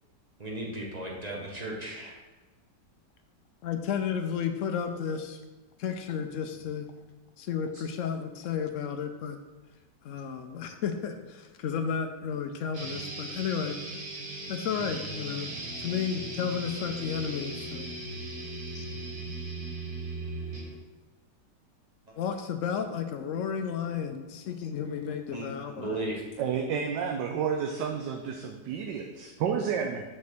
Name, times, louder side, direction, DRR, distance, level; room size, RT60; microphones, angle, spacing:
voice 1, 0.4-2.2 7.7-7.8 22.1-22.2 25.3-26.2, right 1 dB, 30° right, -2 dB, 0.9 m, -36 dB
voice 2, 3.6-5.4 5.8-6.9 7.4-9.4 10.0-13.8 14.5-15.5 15.8-17.9 18.7-18.8 22.2-26.0, left 7 dB, 80° left, 7 dB, 0.7 m, -32 dB
sound 1, 12.7-20.7, right 2 dB, 50° right, 1.7 m, -38 dB
voice 3, 26.4-30.0, right 7 dB, 80° right, 4 dB, 1.2 m, -30 dB
6.4 x 3.5 x 6.0 m, 1.2 s
omnidirectional pair, 1.9 m